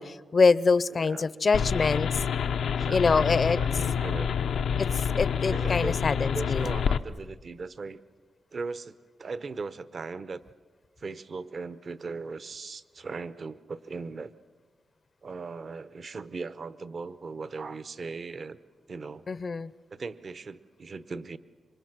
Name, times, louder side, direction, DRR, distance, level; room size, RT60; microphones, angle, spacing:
voice 1, 0.0-2.1 2.9-3.6 4.8-4.9 5.2-6.7 19.3-19.7, left 4 dB, 50° left, 18 dB, 0.6 m, -24 dB
voice 2, 0.9-1.3 2.8-3.3 3.5-4.4 5.5-6.0 6.3-8.0 8.5-10.4 11.0-14.3 15.2-18.6 18.9-19.2 19.9-21.4, right 4 dB, 55° right, 14 dB, 0.9 m, -38 dB
sound 1, 1.5-7.0, left 7 dB, 90° left, 0.7 m, -27 dB
27.0 x 25.0 x 6.1 m, 1.5 s
cardioid pair, 75°, 0 cm